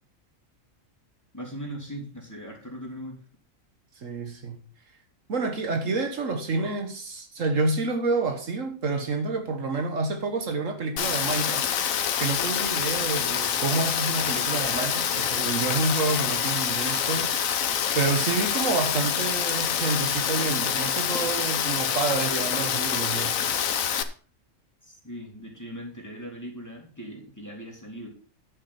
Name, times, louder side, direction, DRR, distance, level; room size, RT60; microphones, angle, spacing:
voice 1, 1.3-3.2 24.8-28.1, equal, 10° left, 3.0 m, -39 dB
voice 2, 4.0-4.6 5.3-23.5, right 3 dB, 65° right, 1.6 m, -29 dB
Rain, 11.0-24.0, left 8 dB, 75° left, 1.3 m, -26 dB
9.9 x 8.5 x 4.2 m
omnidirectional pair, 1.5 m